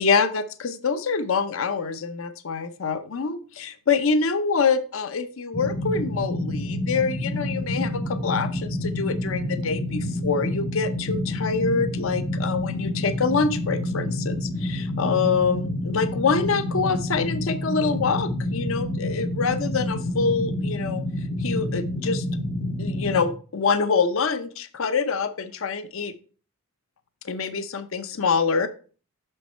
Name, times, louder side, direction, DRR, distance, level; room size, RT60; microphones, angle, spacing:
voice 1, 0.0-21.0 21.4-22.2 22.8-26.1 27.2-28.7, left 5 dB, 65° left, 11 dB, 0.6 m, -25 dB
sound 1, 5.5-23.2, left 1 dB, 30° left, 0.9 m, -28 dB
6.4 x 5.5 x 4.3 m, 0.39 s
head